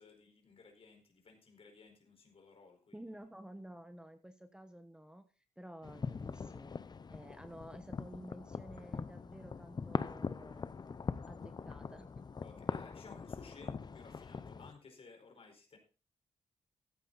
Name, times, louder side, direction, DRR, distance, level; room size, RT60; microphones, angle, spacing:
voice 1, 0.0-3.0 12.4-15.8, left 4 dB, 55° left, 4 dB, 4.6 m, -57 dB
voice 2, 2.9-5.2 5.6-6.7 7.1-10.7 11.2-12.1, right 1 dB, 5° right, 9 dB, 1.1 m, -52 dB
sound 1, 5.8-14.7, left 5 dB, 35° left, 0.7 m, -42 dB
14.5 x 9.0 x 4.1 m, 0.33 s
cardioid pair, 90°, 12 cm